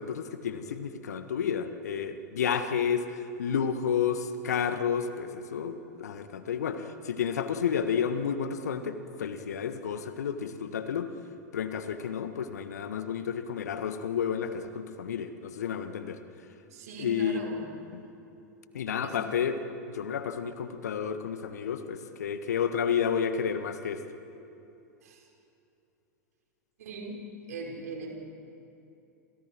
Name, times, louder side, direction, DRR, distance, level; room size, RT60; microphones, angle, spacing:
voice 1, 0.0-3.1 3.4-11.1 11.5-16.2 17.0-17.4 17.9-18.0 18.7-19.6 19.9-24.0, left 7 dB, 65° left, 9 dB, 1.6 m, -31 dB
voice 2, 16.7-17.7 19.0-19.2 25.0-25.3 26.8-28.1, right 3 dB, 65° right, 0 dB, 5.3 m, -40 dB
29.0 x 27.5 x 4.7 m, 2.9 s
figure-of-eight pair, 90°, 9 cm